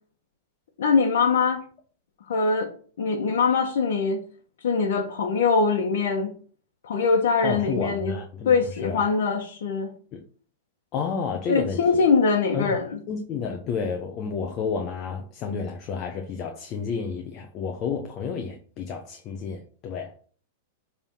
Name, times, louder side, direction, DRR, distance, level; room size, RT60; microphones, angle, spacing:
voice 1, 0.8-1.6 2.3-4.2 4.6-6.3 6.8-8.1 8.4-9.9 11.5-12.9, left 5 dB, 80° left, 1.3 m, -22 dB
voice 2, 7.4-9.0 10.1-10.2 10.9-12.0 12.5-12.7 13.1-20.1, left 6 dB, 30° left, 0.9 m, -31 dB
7.1 x 3.6 x 5.5 m
supercardioid pair, 160°, 0 cm